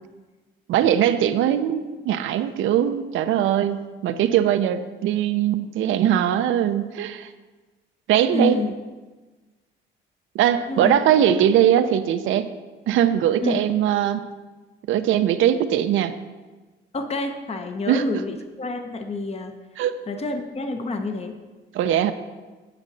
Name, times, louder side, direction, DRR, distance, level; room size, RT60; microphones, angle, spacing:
voice 1, 0.7-7.3 8.1-8.6 10.3-12.5 12.9-14.3 14.9-16.1 17.9-18.0 19.8-19.9 21.7-22.1, right 10 dB, 80° right, 10 dB, 0.6 m, -21 dB
voice 2, 8.3-8.7 10.7-10.9 13.4-13.6 16.9-19.5 20.1-21.4, left 3 dB, 30° left, 6 dB, 0.8 m, -28 dB
9.9 x 7.3 x 4.0 m, 1.3 s
cardioid pair, 90°, 20 cm